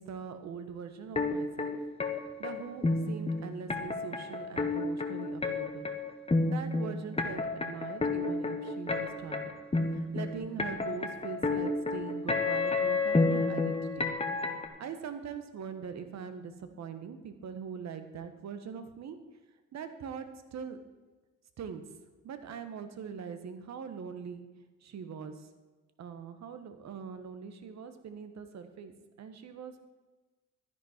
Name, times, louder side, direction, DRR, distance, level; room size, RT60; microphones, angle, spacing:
voice 1, 0.0-1.8 2.4-5.9 6.5-9.5 9.9-14.1 14.8-19.2 19.7-20.3 20.5-20.8 21.6-21.8 22.2-24.5 24.8-25.5 26.0-29.8, right 6 dB, 65° right, 9 dB, 1.5 m, -42 dB
sound 1, 1.2-14.7, left 3 dB, 20° left, 1.6 m, -30 dB
12.5 x 11.0 x 4.5 m, 1.2 s
cardioid pair, 90°, 30 cm